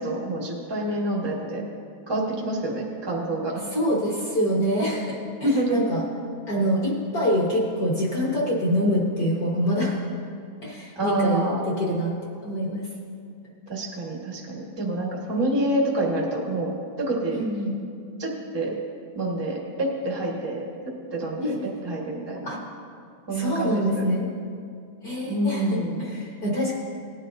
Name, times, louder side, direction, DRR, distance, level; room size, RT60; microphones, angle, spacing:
voice 1, 0.0-1.6 2.1-3.6 5.4-5.8 10.9-11.6 13.7-16.7 17.0-17.4 18.2-18.7 19.1-21.6 21.8-22.5 23.3-24.0 25.2-26.1, right 1 dB, 40° right, -3 dB, 0.3 m, -27 dB
voice 2, 3.7-6.0 6.5-10.0 10.6-12.1 12.4-12.9 17.3-17.8 21.4-21.5 22.5-22.6 23.3-24.3 25.0-26.8, equal, 50° left, -3 dB, 1.2 m, -25 dB
18.5 x 10.5 x 2.7 m, 2.4 s
omnidirectional pair, 3.4 m